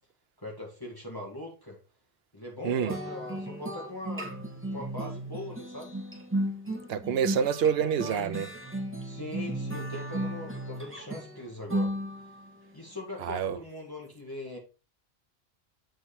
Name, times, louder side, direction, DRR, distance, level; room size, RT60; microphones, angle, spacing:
voice 1, 0.4-1.8 2.3-4.3 4.7-5.9 9.0-11.9 12.7-14.6, left 1 dB, 20° left, 2.1 m, -41 dB
voice 2, 2.6-3.0 6.9-8.5 13.2-13.6, right 7 dB, 70° right, 0.9 m, -27 dB
sound 1, 2.9-12.5, right 1 dB, 10° right, 1.5 m, -35 dB
8.0 x 4.6 x 4.2 m
omnidirectional pair, 1.1 m